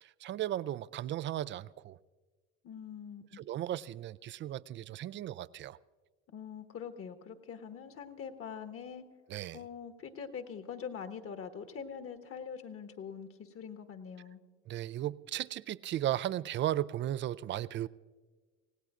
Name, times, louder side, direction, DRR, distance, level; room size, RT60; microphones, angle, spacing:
voice 1, 0.0-2.0 3.4-5.8 9.3-9.6 14.7-17.9, right 12 dB, 35° right, 0.4 m, -36 dB
voice 2, 2.6-3.4 6.3-9.0 9.5-14.4, left 7 dB, 40° left, 1.5 m, -44 dB
26.5 x 17.5 x 2.5 m
hypercardioid pair, 75°, 34 cm